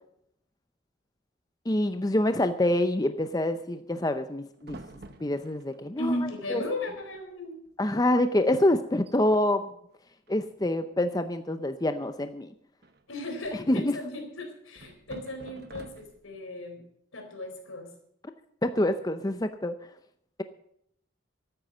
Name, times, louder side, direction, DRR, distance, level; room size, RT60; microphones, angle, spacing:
voice 1, 1.7-4.8 5.2-6.2 6.5-6.6 7.8-9.7 10.3-12.5 13.7-13.9 18.6-19.7, left 1 dB, 20° left, 8 dB, 0.6 m, -26 dB
sound 1, 4.6-5.8 6.7-6.8 6.9-7.3 7.6-7.8 8.4-8.5 8.9-9.2 10.3-10.8 12.8-13.8 14.7-16.4, right 2 dB, 50° right, 1.0 m, -48 dB
voice 2, 6.0-7.5 13.1-16.8 17.1-17.9, left 1 dB, 85° left, 4 dB, 4.0 m, -35 dB
13.5 x 9.3 x 7.5 m, 0.72 s
head